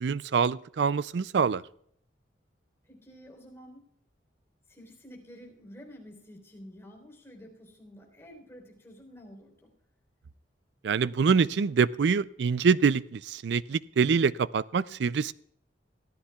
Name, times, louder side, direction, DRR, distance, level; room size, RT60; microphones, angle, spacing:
voice 1, 0.0-1.6 10.8-15.3, right 5 dB, 70° right, 18 dB, 0.4 m, -25 dB
voice 2, 2.8-3.9 4.7-9.7, equal, 15° left, 0 dB, 3.8 m, -50 dB
22.5 x 14.5 x 2.3 m, 0.67 s
head